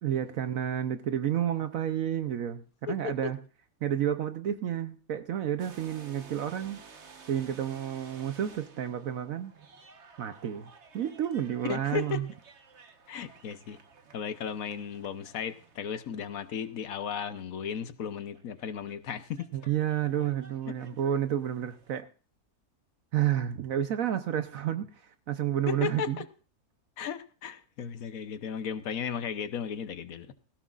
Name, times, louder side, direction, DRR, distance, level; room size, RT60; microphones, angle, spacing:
voice 1, 0.0-3.4 3.8-6.8 7.3-9.5 10.2-12.3 19.5-22.1 23.1-26.2, right 10 dB, 65° right, 9 dB, 1.1 m, -30 dB
voice 2, 2.9-3.3 11.7-12.2 13.1-13.8 14.1-19.5 25.7-26.2 27.0-30.3, left 7 dB, 65° left, 11 dB, 1.3 m, -35 dB
sound 1, 5.6-17.4 18.3-22.0, right 5 dB, 50° right, 1.4 m, -54 dB
17.5 x 16.5 x 2.5 m, 0.38 s
omnidirectional pair, 1.6 m